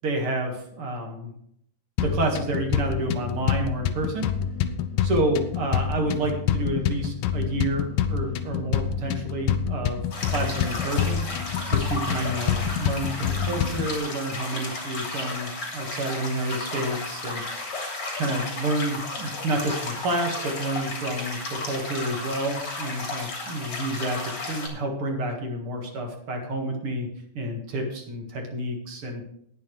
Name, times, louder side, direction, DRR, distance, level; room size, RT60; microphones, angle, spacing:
voice 1, 0.0-1.3 2.0-4.3 5.0-10.0 10.3-11.3 11.7-17.7 18.2-27.1 27.3-29.3, right 1 dB, 45° right, 2 dB, 2.2 m, -29 dB
sound 1, 2.0-14.0, left 8 dB, 85° left, 2.3 m, -27 dB
sound 2, 10.1-24.7, left 2 dB, 40° left, 3.7 m, -33 dB
18.5 x 7.6 x 3.2 m, 0.70 s
omnidirectional pair, 4.1 m